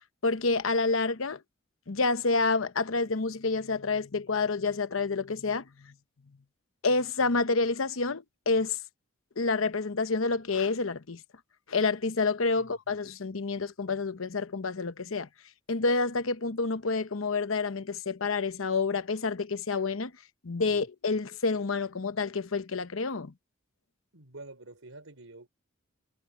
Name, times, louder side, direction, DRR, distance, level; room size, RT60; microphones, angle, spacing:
voice 1, 0.2-1.4 1.9-5.9 6.8-8.8 9.4-11.2 11.7-15.3 15.7-20.1 20.4-23.3, left 3 dB, 75° left, 0.9 m, -28 dB
voice 2, 24.1-25.5, right 2 dB, 85° right, 4.2 m, -48 dB
head